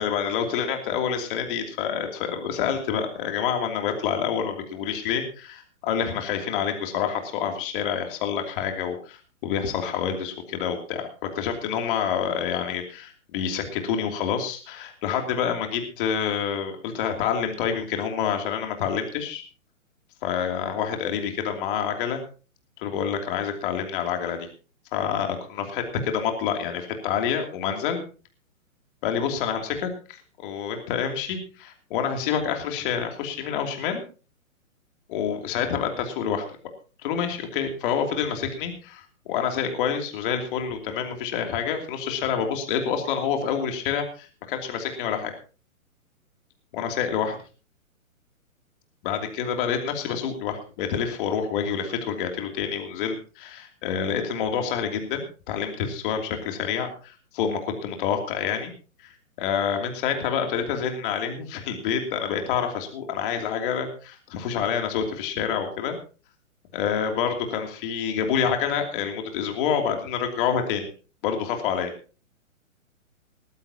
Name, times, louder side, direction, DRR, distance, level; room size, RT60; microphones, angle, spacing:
voice 1, 0.0-9.2 9.4-19.4 20.2-22.2 22.8-24.5 24.9-28.0 29.0-34.0 35.1-36.5 37.0-39.0 39.3-45.3 46.7-47.4 49.0-58.7 59.0-66.0 66.7-70.9 71.2-71.9, left 7 dB, 40° left, 4 dB, 2.9 m, -27 dB
18.0 x 14.5 x 2.9 m, 0.36 s
hypercardioid pair, 145°, 42 cm